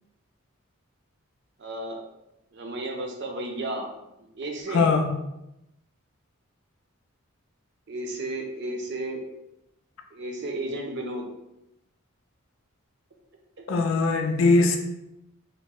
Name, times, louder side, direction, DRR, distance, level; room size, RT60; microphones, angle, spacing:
voice 1, 1.6-2.0 2.5-3.9 4.3-4.9 7.9-9.2 10.1-11.3 13.6-13.7, right 1 dB, 50° right, 1 dB, 0.5 m, -33 dB
voice 2, 4.7-5.1 13.7-14.8, left 3 dB, 70° left, 4 dB, 0.4 m, -21 dB
2.9 x 2.1 x 3.7 m, 0.89 s
head